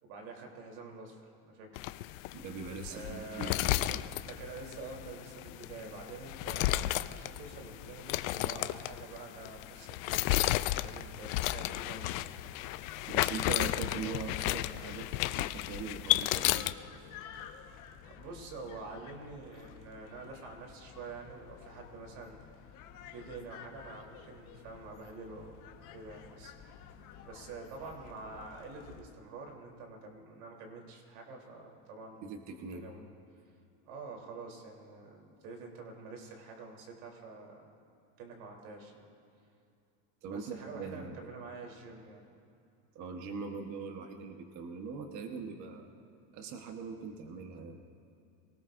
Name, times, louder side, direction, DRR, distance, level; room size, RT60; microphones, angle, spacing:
voice 1, 0.0-1.8 2.9-3.6 4.2-10.2 10.8-12.3 18.1-22.4 23.0-25.6 25.9-26.7 27.2-32.2 32.7-33.0 33.9-37.7 38.2-39.0 40.3-42.2, right 3 dB, 75° right, 1 dB, 3.6 m, -47 dB
sound 1, 1.8-16.7, left 17 dB, 70° left, 0.6 m, -33 dB
voice 2, 2.3-4.0 13.1-16.7 32.2-32.8 40.2-41.2 42.9-45.9 46.3-47.8, right 5 dB, 40° right, 4 dB, 1.3 m, -41 dB
sound 2, 11.3-29.0, left 8 dB, 45° left, 1.4 m, -51 dB
26.0 x 19.0 x 2.6 m, 2.6 s
supercardioid pair, 140°, 43 cm